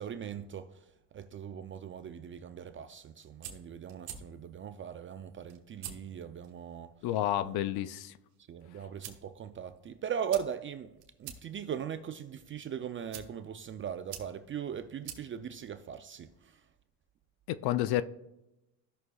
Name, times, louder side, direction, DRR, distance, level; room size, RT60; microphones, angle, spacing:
voice 1, 0.0-6.9 7.4-7.6 8.5-16.6, right 8 dB, 30° right, 0.4 m, -39 dB
sound 1, 3.0-16.4, right 9 dB, 90° right, 1.4 m, -51 dB
voice 2, 7.0-8.1 17.5-18.0, left 13 dB, 55° left, 0.5 m, -30 dB
16.0 x 6.1 x 2.3 m
supercardioid pair, 95°, 48 cm